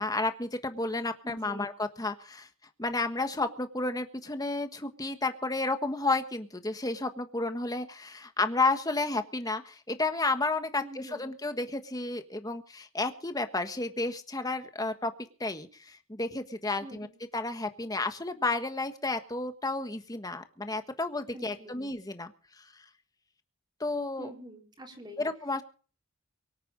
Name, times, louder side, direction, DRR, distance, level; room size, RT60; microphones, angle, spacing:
voice 1, 0.0-2.5 2.8-15.1 15.4-17.1 17.3-22.3 23.8-24.3 25.2-25.6, left 2 dB, 15° left, 8 dB, 1.5 m, -31 dB
voice 2, 1.2-1.7 10.8-11.3 16.8-17.1 21.3-21.8 24.2-25.2, right 1 dB, 20° right, 2 dB, 3.6 m, -46 dB
24.0 x 8.9 x 5.1 m, 0.40 s
head